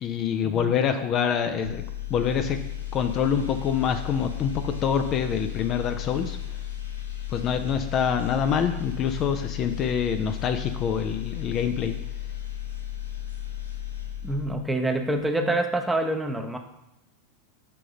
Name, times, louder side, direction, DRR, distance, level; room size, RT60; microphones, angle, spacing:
voice 1, 0.0-1.8 2.1-2.6 2.9-6.4 7.3-11.9, left 7 dB, 35° left, 8 dB, 0.4 m, -26 dB
sound 1, 1.6-14.7 15.1-15.3, left 11 dB, 85° left, 0.8 m, -34 dB
voice 2, 14.2-16.6, right 1 dB, 5° right, 5 dB, 0.6 m, -26 dB
6.6 x 3.7 x 5.1 m, 0.91 s
figure-of-eight pair, 85°, 0 cm